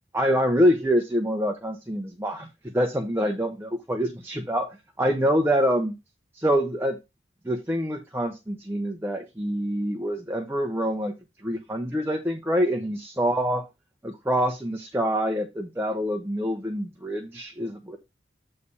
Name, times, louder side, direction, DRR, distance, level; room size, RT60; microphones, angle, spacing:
voice 1, 0.1-4.7 5.0-5.9 6.3-7.0 7.4-11.1 11.4-13.6 14.0-18.0, equal, 15° right, 0.7 m, -25 dB
8.3 x 3.3 x 5.5 m
head